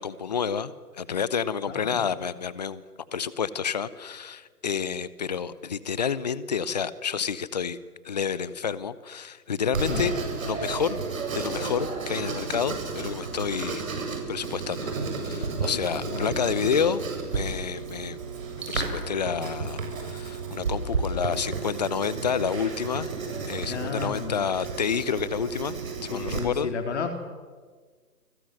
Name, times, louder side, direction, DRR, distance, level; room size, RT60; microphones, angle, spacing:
voice 1, 0.0-2.8 3.1-7.8 8.0-10.2 10.5-11.0 11.3-14.9 15.2-17.0 17.3-18.2 18.7-23.1 23.5-25.8 26.0-26.7, left 7 dB, 25° left, 17 dB, 0.8 m, -29 dB
voice 2, 1.7-2.1 9.9-10.1 16.0-16.3 23.7-24.4 26.1-27.2, left 5 dB, 45° left, 6 dB, 3.4 m, -32 dB
Writing, 9.7-26.4, right 4 dB, 55° right, 7.5 m, -32 dB
29.0 x 21.0 x 7.8 m, 1.5 s
figure-of-eight pair, 155°, 47 cm